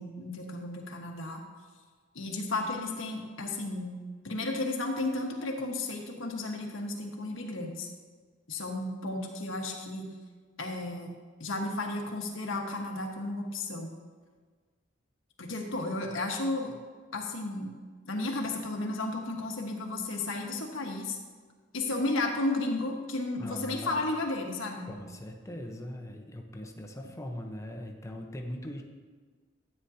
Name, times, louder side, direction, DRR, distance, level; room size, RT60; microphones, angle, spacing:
voice 1, 0.0-1.4 2.1-3.9 4.2-7.9 8.5-10.1 10.6-13.9 15.4-16.8 17.1-17.7 18.0-21.2 21.7-24.9, left 2 dB, 85° left, 1 dB, 1.4 m, -33 dB
voice 2, 23.4-24.0 24.8-28.8, left 1 dB, 15° left, 2 dB, 0.9 m, -40 dB
13.0 x 9.0 x 2.8 m, 1.5 s
head